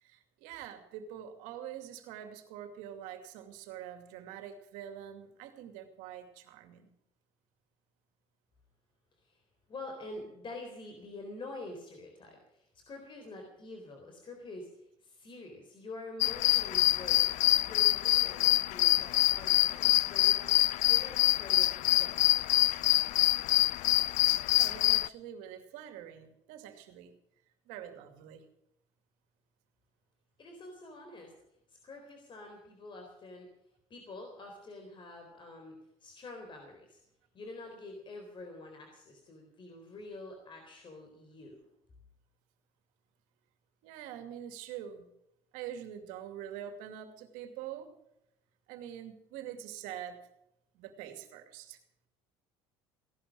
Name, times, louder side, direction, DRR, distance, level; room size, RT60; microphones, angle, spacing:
voice 1, 0.0-6.9 24.6-27.1 27.7-28.4 43.8-45.1 45.5-47.9 48.7-50.3 50.7-51.8, right 10 dB, 75° right, 7 dB, 2.5 m, -45 dB
voice 2, 9.7-17.3 17.6-22.2 30.4-31.3 31.7-33.5 33.9-35.7 36.0-37.0 37.3-41.6, left 2 dB, 35° left, 3 dB, 3.9 m, -47 dB
sound 1, 16.2-25.1, left 17 dB, 65° left, 0.4 m, -26 dB
17.0 x 11.5 x 6.3 m, 0.81 s
supercardioid pair, 85°, 14 cm